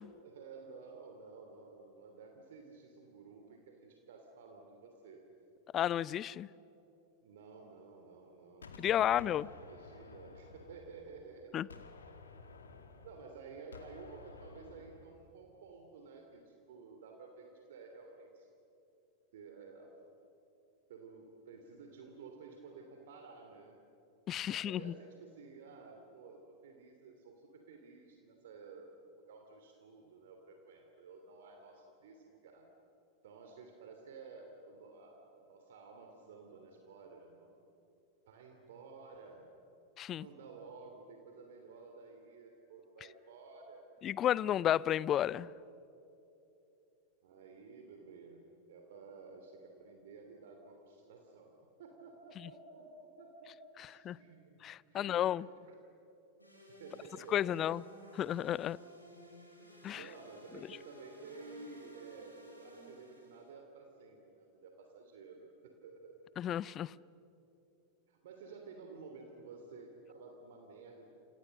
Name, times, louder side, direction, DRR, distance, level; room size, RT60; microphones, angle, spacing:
voice 1, 0.2-5.2 7.2-11.7 13.0-18.5 19.3-19.9 20.9-23.8 24.5-32.7 33.2-37.6 38.3-39.4 40.2-43.9 44.4-44.5 47.2-48.4 48.7-51.5 51.8-55.8 56.8-57.6 59.9-66.3 68.1-71.1, right 4 dB, 55° right, 3.0 m, -53 dB
voice 2, 5.7-6.5 8.8-9.5 11.5-11.7 24.3-24.9 40.0-40.3 44.0-45.5 54.0-54.2 54.6-55.4 57.3-57.8 58.1-58.8 59.8-60.0 66.4-66.9, left 11 dB, 30° left, 0.5 m, -32 dB
Gunshot gunfire, 8.6-11.3 11.7-15.2, left 4 dB, 70° left, 2.2 m, -54 dB
sound 1, 56.4-63.5, equal, 90° left, 5.7 m, -56 dB
29.5 x 28.0 x 6.7 m
figure-of-eight pair, 90°, 0 cm